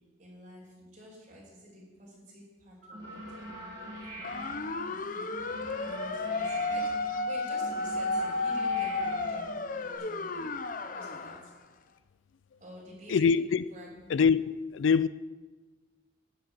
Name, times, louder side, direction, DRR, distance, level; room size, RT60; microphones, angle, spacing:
voice 1, 0.2-5.4 5.8-10.5 10.9-11.5 12.6-13.3 13.7-14.0, equal, 40° right, 4.9 m, -49 dB
sound 1, 2.8-9.9, equal, 65° right, 5.8 m, -44 dB
sound 2, 4.2-11.4, left 3 dB, 45° left, 0.7 m, -32 dB
voice 2, 13.1-13.6 14.1-15.1, left 6 dB, 75° left, 0.4 m, -24 dB
12.0 x 7.8 x 9.1 m
head